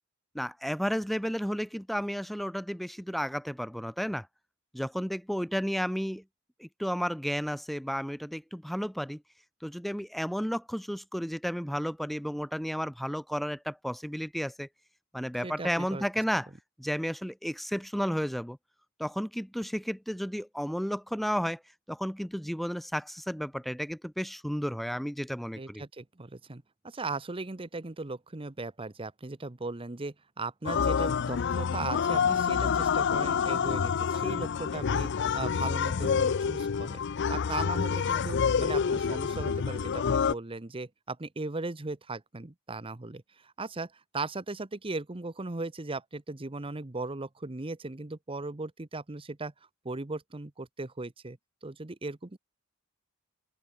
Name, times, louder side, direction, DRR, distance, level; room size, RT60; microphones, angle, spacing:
voice 1, 0.3-4.3 4.7-6.2 6.6-9.2 9.6-14.7 15.1-16.5 16.8-18.6 19.0-21.6 21.9-25.8, equal, ahead, 0.7 m, -32 dB
voice 2, 15.4-16.0 25.6-37.0 37.3-49.5 49.8-52.4, right 3 dB, 25° right, 0.9 m, -38 dB
sound 1, 30.6-40.3, left 6 dB, 55° left, 0.5 m, -28 dB
head